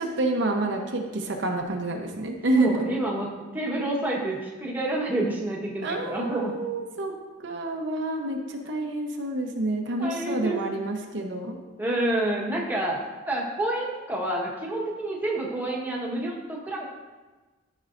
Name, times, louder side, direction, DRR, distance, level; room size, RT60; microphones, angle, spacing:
voice 1, 0.0-3.0 5.8-7.1 7.4-11.6, right 2 dB, 65° right, 1 dB, 0.8 m, -28 dB
voice 2, 2.6-6.5 10.0-10.6 11.8-13.0 13.3-16.8, right 1 dB, 10° right, -3 dB, 1.2 m, -28 dB
13.0 x 5.4 x 2.5 m, 1.3 s
head